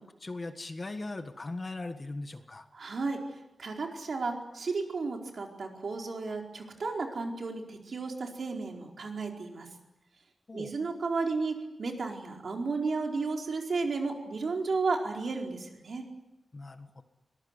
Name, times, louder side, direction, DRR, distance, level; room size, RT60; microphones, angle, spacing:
voice 1, 0.0-2.7 10.5-10.7 16.5-17.0, left 2 dB, 30° left, 8 dB, 1.5 m, -39 dB
voice 2, 2.7-3.2 3.6-9.7 10.5-16.0, right 4 dB, 55° right, 2 dB, 4.5 m, -33 dB
23.5 x 20.5 x 9.8 m, 0.96 s
wide cardioid pair, 175°, 0 cm